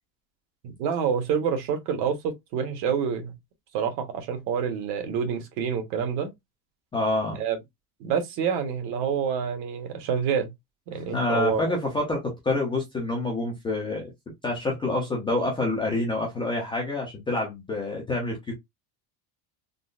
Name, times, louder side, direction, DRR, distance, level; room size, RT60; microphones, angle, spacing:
voice 1, 0.6-3.3 3.7-6.3 7.3-7.6 8.0-10.5 10.9-11.8, right 7 dB, 60° right, 1.1 m, -27 dB
voice 2, 6.9-7.4 10.9-14.1 14.4-18.5, left 2 dB, 10° left, 0.4 m, -27 dB
3.8 x 2.1 x 2.4 m
cardioid pair, 170°, 47 cm